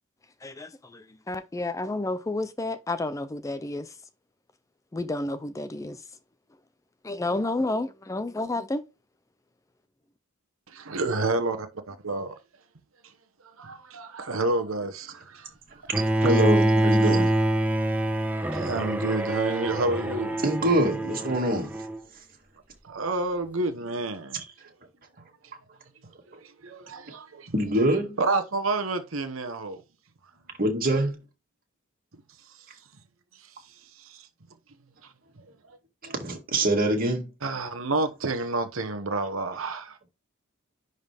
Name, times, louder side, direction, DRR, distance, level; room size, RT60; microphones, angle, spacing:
voice 1, 0.4-3.9 4.9-6.0 7.0-8.8, left 2 dB, 15° left, 0.4 m, -30 dB
voice 2, 10.7-12.3 13.6-15.5 16.2-16.3 18.5-20.4 22.8-24.4 26.3-27.5 28.2-29.8 33.4-33.5 33.9-34.3 35.7-35.8 37.4-40.0, right 2 dB, 75° right, 1.0 m, -29 dB
Bowed string instrument, 15.9-22.0, right 1 dB, 10° right, 1.0 m, -25 dB
voice 3, 16.2-17.3 20.4-21.8 27.5-28.2 30.6-31.2 36.0-37.3, right 1 dB, 45° right, 2.2 m, -24 dB
10.5 x 4.0 x 3.4 m
head